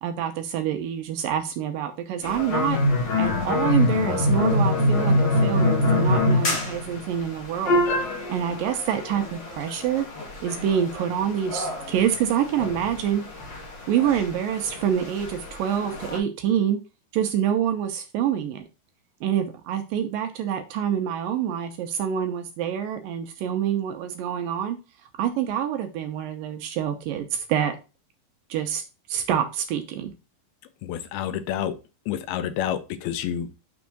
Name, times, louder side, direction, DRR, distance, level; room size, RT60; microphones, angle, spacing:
voice 1, 0.0-2.8 3.2-10.1 10.4-13.2 13.9-16.8 17.1-18.6 19.2-24.8 25.2-27.8 28.5-28.8 29.1-30.1, right 9 dB, 75° right, 2.2 m, -26 dB
sound 1, 2.2-16.2, left 2 dB, 65° left, 1.1 m, -25 dB
voice 2, 30.8-31.7 32.1-33.5, left 10 dB, 85° left, 2.5 m, -29 dB
6.3 x 3.5 x 5.8 m
omnidirectional pair, 4.4 m